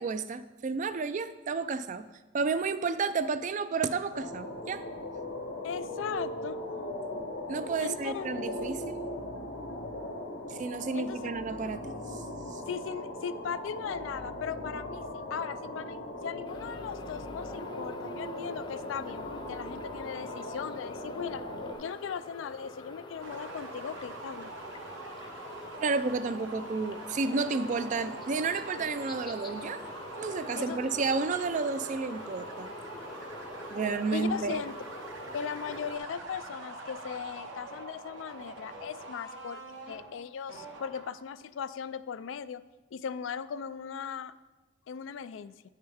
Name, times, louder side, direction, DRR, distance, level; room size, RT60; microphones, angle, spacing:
voice 1, 0.0-2.1 2.3-4.8 7.5-9.0 10.5-11.9 12.5-12.6 25.8-29.8 30.2-32.7 33.7-34.6, right 4 dB, 40° right, 13 dB, 0.3 m, -31 dB
sound 1, 4.1-21.8, left 1 dB, 60° left, 1.0 m, -39 dB
voice 2, 5.6-6.6 7.8-8.3 10.9-11.3 12.7-21.4 21.8-24.5 30.5-30.8 33.5-34.7 35.3-39.6 39.9-42.6 42.9-44.3 44.9-45.5, left 7 dB, 80° left, 14 dB, 0.3 m, -38 dB
sound 2, 16.5-36.0, left 2 dB, 25° left, 0.6 m, -46 dB
sound 3, 23.2-41.3, right 2 dB, 80° right, 1.1 m, -44 dB
9.9 x 6.5 x 3.5 m, 1.2 s
head